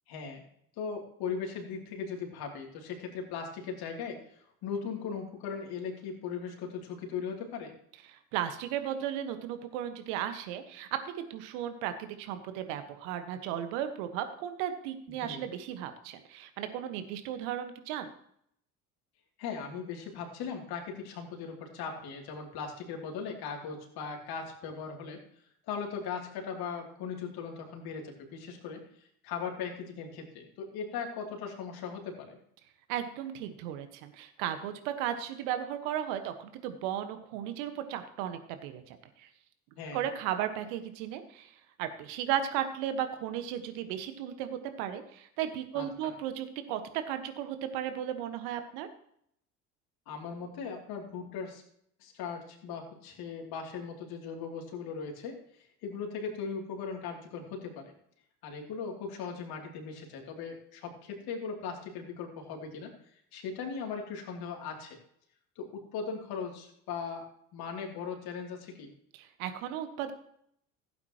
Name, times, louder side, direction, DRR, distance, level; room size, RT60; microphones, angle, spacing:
voice 1, 0.1-0.4 0.8-7.7 15.2-15.4 19.4-25.2 25.7-28.8 29.2-32.4 39.8-40.1 45.7-46.1 50.1-51.6 52.0-55.3 55.8-57.9 58.4-62.9 63.3-65.0 65.6-67.2 67.5-68.9, left 6 dB, 55° left, 1 dB, 3.0 m, -38 dB
voice 2, 8.1-18.1 32.9-39.3 39.9-48.9 69.1-70.1, right 10 dB, 65° right, 9 dB, 1.5 m, -35 dB
16.0 x 8.6 x 3.0 m, 0.68 s
figure-of-eight pair, 60°, 43 cm